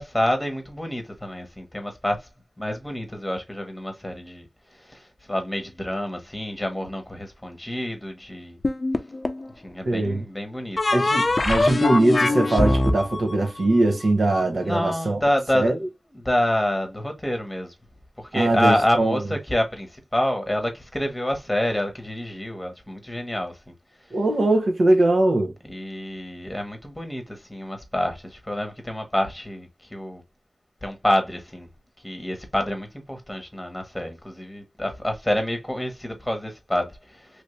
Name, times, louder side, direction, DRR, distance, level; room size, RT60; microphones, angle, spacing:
voice 1, 0.0-2.3 2.6-4.5 4.7-8.6 9.6-10.8 14.6-15.7 16.1-17.7 18.2-23.7 25.7-30.2 30.8-31.7 32.0-37.4, left 1 dB, 10° left, 1.1 m, -27 dB
sound 1, 8.6-9.5 10.8-14.4, left 2 dB, 50° left, 0.5 m, -23 dB
voice 2, 9.8-10.2 10.9-15.2 15.5-15.8 18.3-19.2 24.1-25.5, right 2 dB, 85° right, 1.1 m, -21 dB
3.0 x 2.7 x 3.1 m
wide cardioid pair, 65°, 0 cm